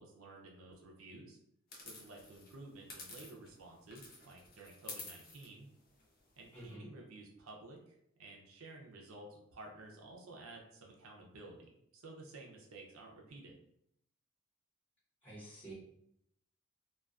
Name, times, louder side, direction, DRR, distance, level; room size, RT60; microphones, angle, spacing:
voice 1, 0.0-1.4 1.8-5.7 6.4-13.6, right 2 dB, 85° right, 0 dB, 0.5 m, -53 dB
sound 1, 1.7-3.6 3.9-6.7, left 3 dB, 45° left, 0.6 m, -51 dB
voice 2, 6.5-6.9 15.2-15.7, right 1 dB, 30° left, -10 dB, 1.0 m, -49 dB
2.3 x 2.3 x 2.4 m, 0.75 s
head